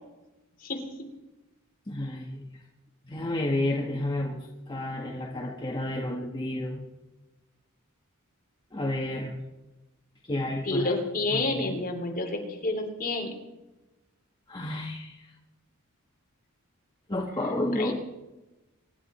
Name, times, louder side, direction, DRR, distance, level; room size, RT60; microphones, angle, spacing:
voice 1, 1.9-2.4 3.0-6.8 8.7-9.3 10.2-10.9 11.3-11.8 14.5-15.3 17.1-17.9, left 1 dB, 20° left, -2 dB, 1.7 m, -31 dB
voice 2, 10.6-13.4 17.7-17.9, left 2 dB, 40° left, 2 dB, 3.0 m, -29 dB
25.0 x 11.5 x 4.4 m, 1.0 s
head